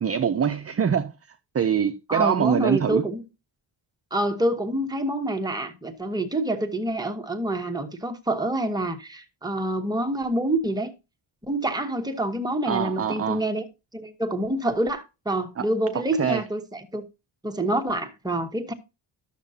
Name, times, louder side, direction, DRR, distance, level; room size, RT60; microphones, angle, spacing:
voice 1, 0.0-1.1 1.5-3.0 12.7-13.4 15.6-15.7 16.2-16.4, right 7 dB, 30° right, 0.4 m, -24 dB
voice 2, 2.1-3.2 4.1-10.9 11.5-13.6 13.9-17.1 17.4-18.7, right 1 dB, 10° right, 1.0 m, -27 dB
12.0 x 6.6 x 2.7 m
wide cardioid pair, 115°, 47 cm